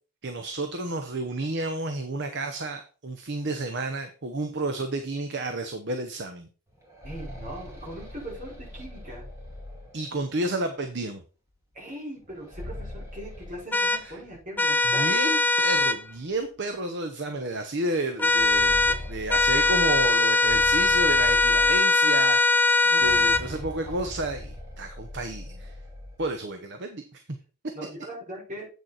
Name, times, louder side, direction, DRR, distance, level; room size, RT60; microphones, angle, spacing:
voice 1, 0.2-6.5 9.9-11.2 14.0-14.2 14.8-25.8 26.2-27.2, right 2 dB, 50° right, 7 dB, 1.0 m, -31 dB
sound 1, 6.7-10.5 12.2-14.4 14.8-14.9 15.7-15.8 16.3-16.5 18.1-22.2 22.9-26.3, left 1 dB, 15° right, 2.7 m, -40 dB
voice 2, 7.0-9.3 11.7-15.4 22.8-23.3 23.8-23.9 27.7-28.6, right 1 dB, 35° right, -3 dB, 5.3 m, -40 dB
sound 2, 13.7-14.0 14.6-16.0 18.2-19.0 19.3-23.4, left 3 dB, 10° left, 0.3 m, -21 dB
8.3 x 6.7 x 4.3 m, 0.35 s
head